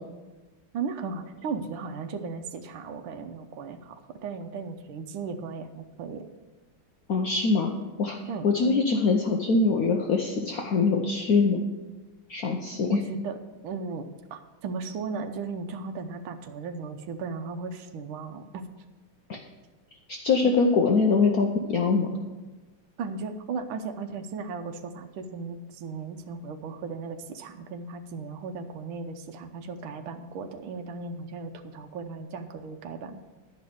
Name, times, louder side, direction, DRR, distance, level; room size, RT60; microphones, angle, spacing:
voice 1, 0.7-6.2 8.3-8.5 12.9-13.4 13.6-18.7 20.4-20.5 23.0-33.2, right 4 dB, 75° right, 6 dB, 1.5 m, -36 dB
voice 2, 7.1-7.7 8.0-8.2 8.4-11.6 12.3-13.0 19.3-19.4 20.1-22.1, left 4 dB, 60° left, 2 dB, 1.0 m, -23 dB
11.0 x 5.5 x 7.8 m, 1.2 s
omnidirectional pair, 2.3 m